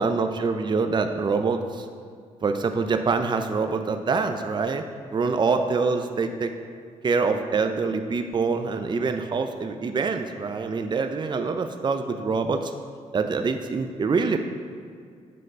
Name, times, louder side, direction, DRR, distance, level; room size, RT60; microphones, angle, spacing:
voice 1, 0.0-1.9 2.4-4.8 5.1-6.5 7.0-12.7 13.1-14.4, right 4 dB, 35° right, 7 dB, 0.5 m, -25 dB
7.6 x 3.8 x 6.6 m, 2.2 s
cardioid pair, 75°, 14 cm